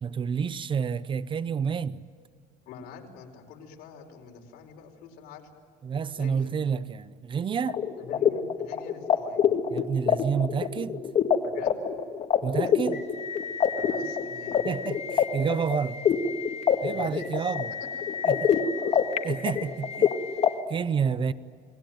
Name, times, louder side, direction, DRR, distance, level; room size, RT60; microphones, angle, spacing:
voice 1, 0.0-2.0 5.8-7.8 9.7-11.0 12.4-13.0 14.6-16.0 16.8-17.7 18.2-18.5 19.2-20.1 20.7-21.3, right 6 dB, 30° right, 0.7 m, -29 dB
voice 2, 2.7-5.5 6.1-6.5 8.0-9.5 11.4-11.8 12.6-12.7 13.8-14.6 16.9-17.5 17.8-19.1, left 6 dB, 75° left, 4.6 m, -45 dB
sound 1, 7.7-20.5, left 7 dB, 40° left, 1.9 m, -26 dB
29.5 x 20.5 x 9.3 m
cardioid pair, 130°, 16 cm